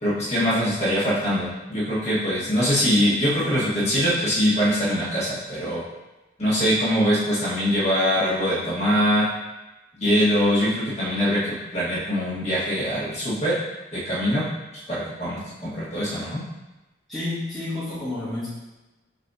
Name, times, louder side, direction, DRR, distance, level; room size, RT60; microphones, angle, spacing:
voice 1, 0.0-5.8 6.4-9.3 9.9-13.6 13.9-14.4 14.9-16.4, equal, 35° left, -8 dB, 1.4 m, -23 dB
voice 2, 17.1-18.5, left 2 dB, ahead, -12 dB, 1.0 m, -30 dB
4.8 x 2.7 x 3.5 m, 1.0 s
head